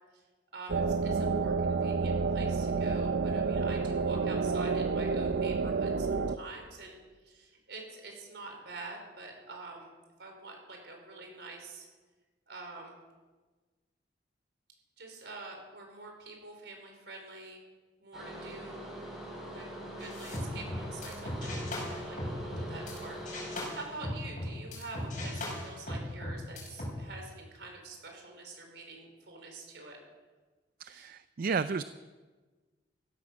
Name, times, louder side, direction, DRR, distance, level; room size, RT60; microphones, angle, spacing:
voice 1, 0.5-7.0 7.2-9.9 10.2-11.9 12.5-13.0 15.0-17.6 18.0-18.9 19.5-19.7 20.0-30.0 30.9-31.1, right 3 dB, 70° right, 2 dB, 4.6 m, -46 dB
sound 1, 0.7-6.4, right 4 dB, 90° right, 0.7 m, -29 dB
sound 2, 18.1-24.3, equal, ahead, 6.1 m, -43 dB
sound 3, 20.0-23.0 23.3-26.9, left 1 dB, 45° left, 6.1 m, -38 dB
voice 2, 30.8-31.8, right 5 dB, 55° right, 13 dB, 0.4 m, -32 dB
15.5 x 13.0 x 6.4 m, 1.3 s
head